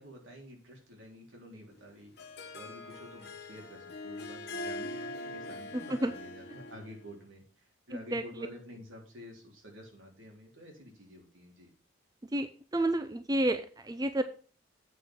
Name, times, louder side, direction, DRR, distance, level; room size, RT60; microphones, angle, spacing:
voice 1, 0.0-11.7, equal, 80° right, 0 dB, 3.7 m, -50 dB
Harp, 1.8-7.1, left 2 dB, 55° left, 1.4 m, -42 dB
voice 2, 5.7-6.1 7.9-8.5 12.3-14.2, right 1 dB, 20° right, 9 dB, 0.5 m, -31 dB
8.2 x 6.0 x 6.1 m, 0.40 s
head